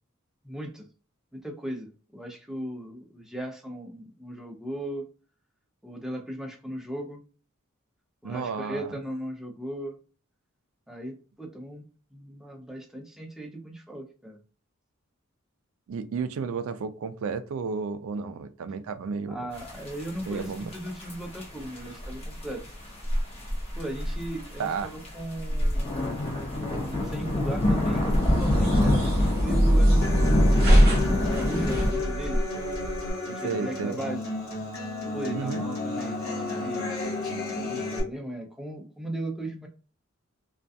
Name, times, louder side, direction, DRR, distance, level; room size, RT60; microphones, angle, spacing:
voice 1, 0.4-0.9 1.3-5.1 5.8-7.2 8.2-10.0 10.9-11.8 12.1-14.4 19.3-22.6 23.8-26.2 26.6-29.0 29.4-30.8 31.3-32.4 33.2-34.2 35.1-37.2 37.4-39.7, right 1 dB, ahead, 1 dB, 0.4 m, -37 dB
voice 2, 8.2-8.9 15.9-19.5 20.2-20.7 24.6-24.9 33.4-34.0 35.3-35.6, right 5 dB, 70° right, 11 dB, 0.3 m, -32 dB
sound 1, 19.5-31.9, left 1 dB, 30° left, 0.8 m, -27 dB
sound 2, 28.1-33.1, equal, 50° right, 0.8 m, -22 dB
Human voice / Acoustic guitar, 30.0-38.0, left 2 dB, 75° left, 1.1 m, -32 dB
2.3 x 2.2 x 2.6 m, 0.38 s
head